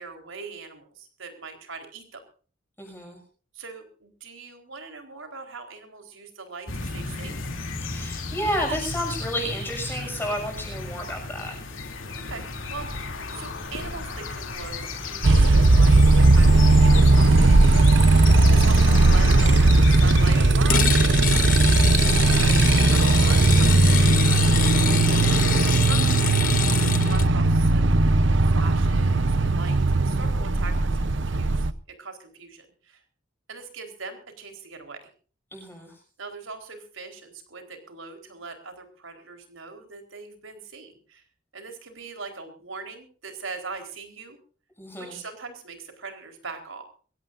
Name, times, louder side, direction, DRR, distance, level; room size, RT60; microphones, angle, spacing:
voice 1, 0.0-2.2 3.5-7.4 12.2-17.8 18.1-22.6 22.9-24.4 25.6-33.0 33.5-35.1 36.2-41.2 41.5-44.4 45.0-46.8, right 4 dB, 85° right, 5 dB, 4.3 m, -41 dB
voice 2, 2.8-3.2 7.8-11.5 24.9-25.4 35.5-35.9 44.8-45.2, equal, 10° left, 1 dB, 6.6 m, -31 dB
sound 1, 6.7-25.8, left 4 dB, 90° left, 3.0 m, -35 dB
Motorcycle, 15.2-31.7, right 2 dB, 70° right, 0.8 m, -18 dB
sound 2, 20.7-27.3, left 9 dB, 45° left, 0.9 m, -27 dB
22.5 x 17.0 x 2.6 m, 0.39 s
head